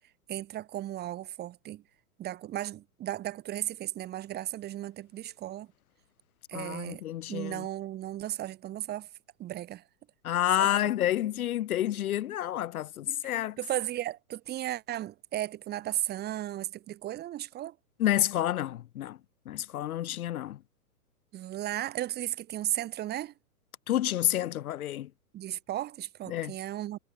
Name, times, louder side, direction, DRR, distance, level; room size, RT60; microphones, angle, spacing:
voice 1, 0.3-1.8 2.2-5.7 6.5-7.0 7.3-9.1 9.4-9.8 10.6-10.7 13.1-17.7 21.3-23.3 25.3-27.0, right 13 dB, 20° right, 2.6 m, -35 dB
voice 2, 6.5-7.7 10.2-13.6 18.0-19.2 19.5-20.6 23.9-25.1 26.3-26.5, left 12 dB, 65° left, 0.9 m, -29 dB
hypercardioid pair, 140°, 46 cm